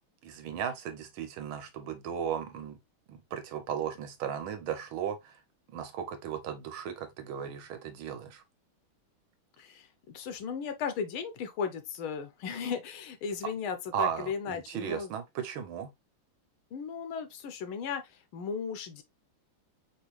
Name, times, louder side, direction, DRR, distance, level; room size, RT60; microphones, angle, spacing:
voice 1, 0.2-2.8 3.1-5.4 5.7-8.4 13.9-15.9, right 8 dB, 75° right, 1.6 m, -36 dB
voice 2, 9.6-15.1 16.7-18.0 18.3-19.0, left 6 dB, 80° left, 1.7 m, -36 dB
5.0 x 3.1 x 3.1 m
omnidirectional pair, 2.3 m